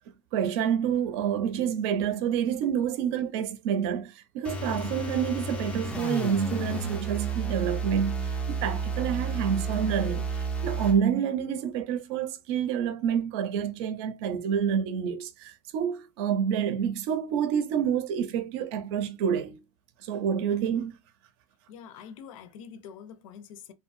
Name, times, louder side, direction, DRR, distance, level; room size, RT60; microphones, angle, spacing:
voice 1, 0.3-19.6 20.0-20.9, right 8 dB, 55° right, 0.5 m, -28 dB
sound 1, 4.4-11.0, right 3 dB, 5° left, 0.3 m, -31 dB
voice 2, 21.7-23.7, left 7 dB, 85° left, 0.5 m, -45 dB
2.7 x 2.2 x 2.5 m
supercardioid pair, 160°, 17 cm